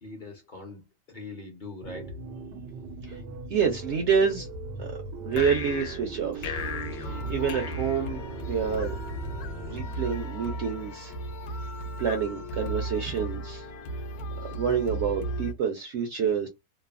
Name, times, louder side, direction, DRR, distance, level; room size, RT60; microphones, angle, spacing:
voice 1, 0.0-2.1, left 3 dB, 50° left, 0.6 m, -42 dB
sound 1, 1.8-9.8, right 2 dB, 90° right, 1.2 m, -39 dB
voice 2, 3.5-4.5 4.8-4.9 5.2-6.6 6.9-8.2 8.5-8.9 9.7-11.1 12.0-13.7 14.5-16.5, right 6 dB, 70° right, 0.6 m, -28 dB
sound 2, 5.3-8.7, left 5 dB, 90° left, 1.2 m, -37 dB
sound 3, 6.5-15.5, right 1 dB, 70° left, 1.0 m, -36 dB
3.1 x 2.0 x 2.4 m
omnidirectional pair, 1.8 m